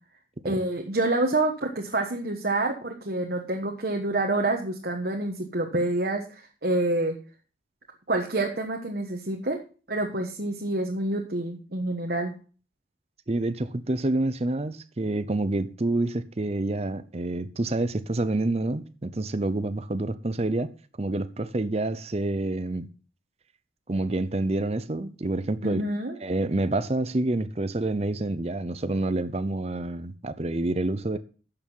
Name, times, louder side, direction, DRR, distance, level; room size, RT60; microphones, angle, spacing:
voice 1, 0.4-7.2 8.1-9.6 9.9-12.3 25.6-26.2, right 2 dB, 55° right, 1.3 m, -27 dB
voice 2, 13.3-20.7 21.0-22.9 23.9-25.9 26.2-31.2, right 2 dB, 35° right, 0.6 m, -28 dB
10.5 x 6.9 x 5.5 m
head